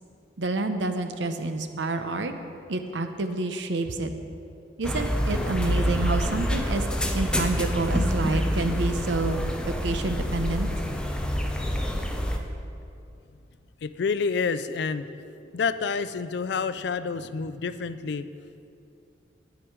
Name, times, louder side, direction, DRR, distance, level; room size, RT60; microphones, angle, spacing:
voice 1, 0.4-2.3 2.7-4.1 4.8-6.9 7.1-10.7, right 2 dB, 80° right, 7 dB, 0.7 m, -28 dB
sound 1, 4.8-12.4, equal, 5° left, 0.6 m, -27 dB
voice 2, 13.8-15.1 15.5-18.3, left 5 dB, 65° left, 13 dB, 0.4 m, -28 dB
9.6 x 9.3 x 4.6 m, 2.6 s
head